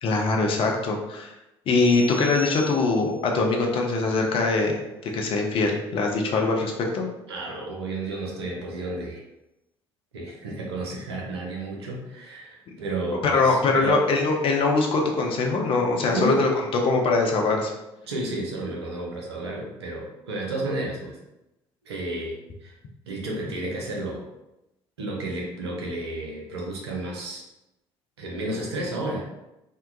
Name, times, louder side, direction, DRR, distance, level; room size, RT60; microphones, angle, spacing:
voice 1, 0.0-1.3 1.7-7.1 13.2-17.7, left 3 dB, 40° left, 1 dB, 0.5 m, -23 dB
sound 1, 1.7-3.3, left 2 dB, 5° right, 0.8 m, -40 dB
voice 2, 7.3-9.2 10.1-14.1 16.1-16.5 18.0-21.2 21.9-22.7 23.1-24.3 25.0-27.4 28.2-29.3, right 1 dB, 75° right, -1 dB, 0.5 m, -31 dB
2.7 x 2.2 x 2.3 m, 0.92 s
figure-of-eight pair, 55°, 14 cm